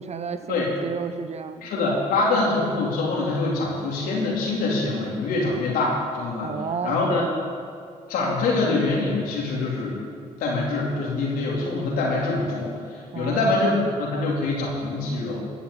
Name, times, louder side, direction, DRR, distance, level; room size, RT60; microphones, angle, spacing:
voice 1, 0.0-1.7 6.4-7.4 13.1-13.6, right 5 dB, 45° right, 10 dB, 1.0 m, -32 dB
voice 2, 1.6-6.6 6.8-7.2 8.1-10.0 10.4-15.6, left 3 dB, 75° left, -3 dB, 4.0 m, -24 dB
15.0 x 7.3 x 8.0 m, 2.4 s
hypercardioid pair, 50°, 15 cm